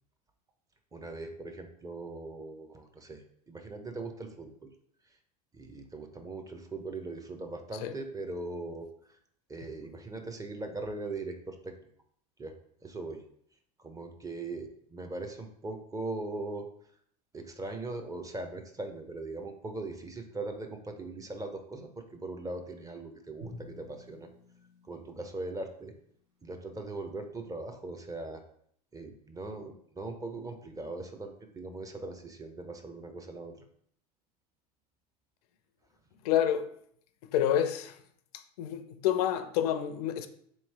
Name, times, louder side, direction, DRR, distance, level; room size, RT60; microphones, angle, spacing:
voice 1, 0.9-4.7 5.5-9.2 9.5-11.7 12.4-12.5 12.8-13.2 13.8-16.7 17.3-24.3 24.8-25.9 26.4-28.4 28.9-33.6, right 2 dB, 15° right, 0.6 m, -40 dB
Drum, 23.4-25.8, left 1 dB, 60° right, 1.0 m, -50 dB
voice 2, 36.2-36.7 37.3-38.0 38.3-40.3, left 10 dB, 75° left, 0.5 m, -28 dB
3.6 x 3.0 x 3.3 m
hypercardioid pair, 95°, 20 cm